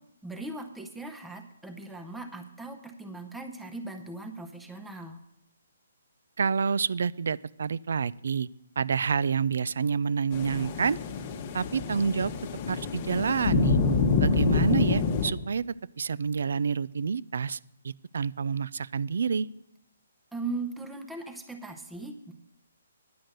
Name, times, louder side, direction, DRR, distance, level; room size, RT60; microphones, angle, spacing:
voice 1, 0.2-5.2 20.3-22.3, right 3 dB, 5° right, 4 dB, 0.7 m, -39 dB
voice 2, 6.4-8.5 8.8-11.0 11.5-12.3 12.7-13.8 14.2-15.6 16.0-17.6 17.8-19.5, right 6 dB, 70° right, 21 dB, 0.3 m, -28 dB
sound 1, 10.3-15.3, left 4 dB, 35° left, 1.0 m, -27 dB
10.5 x 7.6 x 6.6 m, 0.80 s
hypercardioid pair, 155°, 0 cm